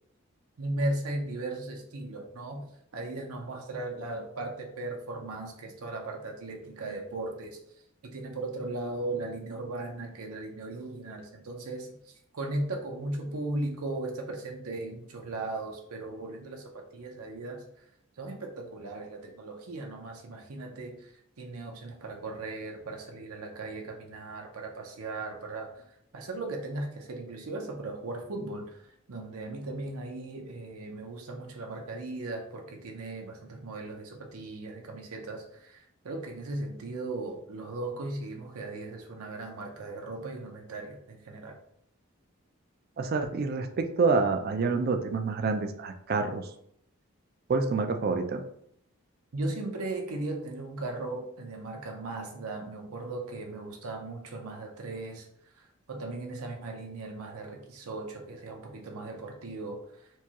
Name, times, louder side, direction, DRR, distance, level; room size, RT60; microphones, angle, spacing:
voice 1, 0.6-7.6 8.1-11.9 12.3-17.6 18.2-25.8 26.1-41.6 49.3-55.3 55.6-59.8, right 2 dB, 90° right, 2 dB, 0.7 m, -37 dB
voice 2, 43.0-46.5 47.5-48.4, right 4 dB, 45° right, 7 dB, 0.3 m, -27 dB
4.4 x 2.3 x 2.9 m, 0.71 s
head